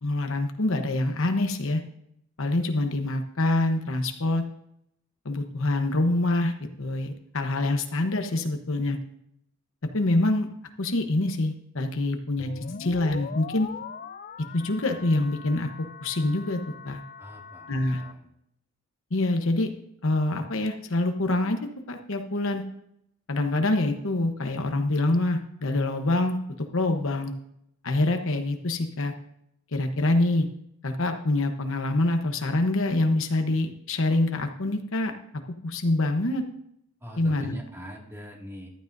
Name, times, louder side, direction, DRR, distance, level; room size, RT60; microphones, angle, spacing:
voice 1, 0.0-1.8 2.4-4.4 5.2-6.5 6.8-9.0 9.9-10.5 10.8-12.5 12.8-13.7 14.5-17.0 17.7-18.0 19.1-19.7 20.0-21.6 21.9-22.6 23.3-27.3 27.8-29.1 29.7-30.5 30.8-35.1 35.6-36.4 37.2-37.5, left 2 dB, 65° left, 6 dB, 1.0 m, -25 dB
sound 1, 12.4-18.1, left 5 dB, 40° left, 0.5 m, -41 dB
voice 2, 17.2-18.3 37.0-38.7, equal, 10° right, -1 dB, 2.2 m, -43 dB
14.5 x 12.5 x 2.7 m, 0.76 s
head